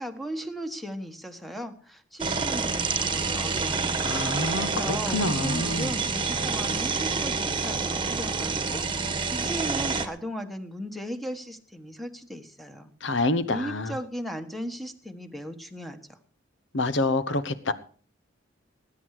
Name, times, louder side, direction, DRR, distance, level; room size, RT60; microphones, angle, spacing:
voice 1, 0.0-4.0 4.3-12.9 13.5-16.2, equal, ahead, 1.3 m, -36 dB
sound 1, 2.2-10.1, right 4 dB, 25° right, 1.3 m, -28 dB
voice 2, 4.0-5.9 13.0-13.9 16.7-17.7, left 2 dB, 70° left, 1.1 m, -27 dB
19.5 x 9.5 x 4.9 m
head